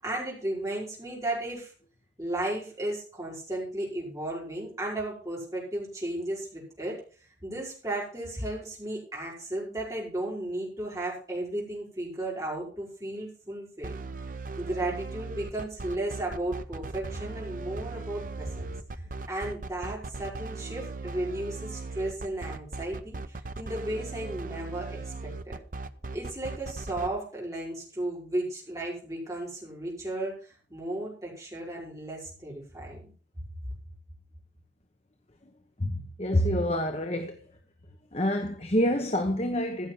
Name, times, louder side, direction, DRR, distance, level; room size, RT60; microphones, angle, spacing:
voice 1, 0.0-1.7 2.2-7.0 7.4-13.9 14.6-25.6 26.1-33.1, right 1 dB, 20° right, 5.1 m, -34 dB
sound 1, 13.8-27.1, right 3 dB, 45° right, 0.7 m, -38 dB
voice 2, 35.8-37.4 38.1-39.9, equal, 35° left, 1.0 m, -27 dB
15.0 x 6.3 x 5.7 m
head